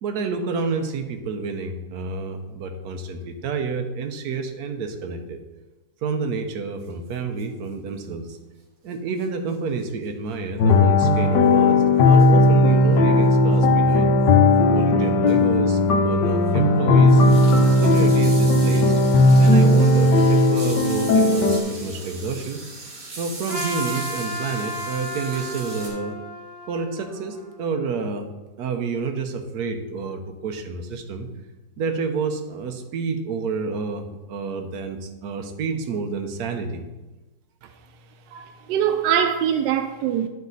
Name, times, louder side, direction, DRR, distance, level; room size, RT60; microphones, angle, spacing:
voice 1, 0.0-5.4 6.0-8.4 8.8-14.2 14.7-17.2 17.8-18.9 19.4-22.6 23.2-26.2 26.7-28.3 28.6-31.3 31.8-36.8, right 4 dB, 70° right, 1.3 m, -29 dB
sound 1, 6.8-6.9 7.1-7.2 7.4-7.5 9.2-9.3 9.5-9.6 10.6-10.7 12.2-12.4 13.5-13.6 14.3-14.4 14.7-14.9 15.3-15.5 15.7-15.8 16.4-25.9, right 2 dB, 50° right, 1.8 m, -38 dB
sound 2, 10.6-21.6, left 2 dB, 80° left, 1.4 m, -16 dB
Trumpet, 23.5-27.8, equal, 15° right, 2.0 m, -34 dB
voice 2, 38.3-40.3, right 9 dB, 85° right, 1.2 m, -23 dB
9.5 x 5.3 x 3.9 m
omnidirectional pair, 1.8 m